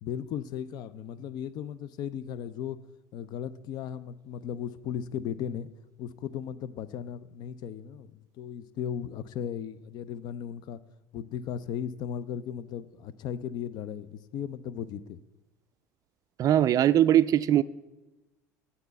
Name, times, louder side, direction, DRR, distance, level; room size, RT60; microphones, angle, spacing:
voice 1, 0.0-2.8 3.1-5.7 6.0-10.8 11.1-15.2, left 9 dB, 55° left, 0.4 m, -36 dB
voice 2, 16.4-17.6, right 11 dB, 45° right, 0.3 m, -21 dB
8.0 x 4.1 x 7.0 m
hypercardioid pair, 80°, 9 cm